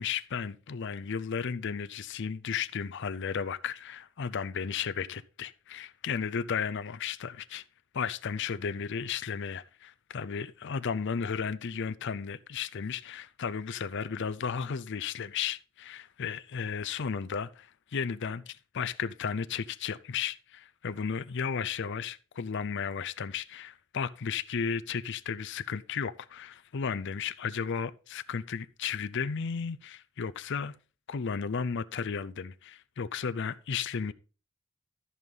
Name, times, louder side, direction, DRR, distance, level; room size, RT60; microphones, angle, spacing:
voice 1, 0.0-7.6 7.9-30.7 31.1-34.1, left 6 dB, 55° left, 0.5 m, -34 dB
13.5 x 5.4 x 4.0 m
head